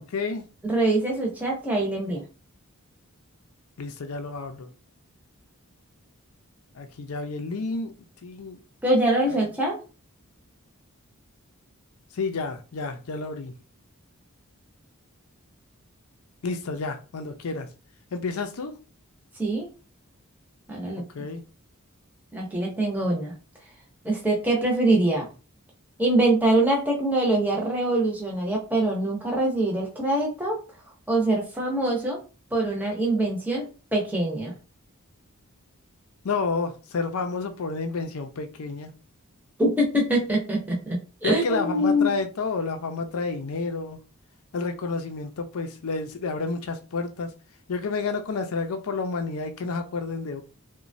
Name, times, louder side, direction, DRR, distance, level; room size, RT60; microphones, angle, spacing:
voice 1, 0.0-0.4 3.8-4.7 6.7-8.0 8.2-8.6 9.3-9.4 12.1-13.5 16.4-17.7 18.1-18.8 21.0-21.4 36.2-38.9 41.2-44.0 44.5-47.3 47.7-50.4, left 4 dB, 80° left, 0.5 m, -30 dB
voice 2, 0.6-2.2 8.8-9.8 19.4-19.7 20.7-21.0 22.3-23.3 24.0-25.3 26.0-30.6 31.1-32.2 32.5-33.7 33.9-34.5 39.6-42.1, right 1 dB, 5° right, 0.6 m, -24 dB
3.0 x 2.2 x 2.6 m
head